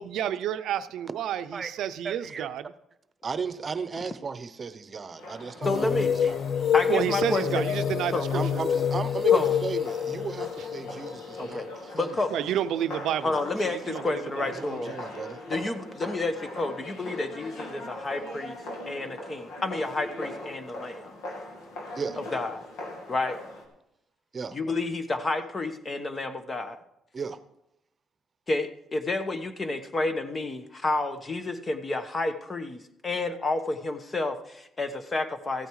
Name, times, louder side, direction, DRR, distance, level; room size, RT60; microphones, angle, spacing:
voice 1, 0.0-2.7 6.9-8.2 8.5-8.6 12.3-13.3 13.7-14.5, right 10 dB, 80° right, 0.5 m, -30 dB
voice 2, 2.0-2.5 3.2-6.3 8.3-12.2 14.6-15.4 18.3-18.4 22.0-22.2 24.3-24.6 27.1-27.4, right 5 dB, 40° right, 0.8 m, -35 dB
sound 1, 5.2-23.6, left 1 dB, 90° left, 2.6 m, -41 dB
sound 2, 5.6-12.0, left 8 dB, 50° left, 0.4 m, -27 dB
voice 3, 5.6-6.2 6.7-7.6 8.1-8.2 9.3-9.6 11.4-12.3 13.2-14.9 15.5-21.1 22.2-22.7 23.1-23.4 24.5-26.8 28.5-35.7, left 2 dB, 30° left, 1.2 m, -30 dB
15.0 x 9.0 x 4.8 m
cardioid pair, 90°, 0 cm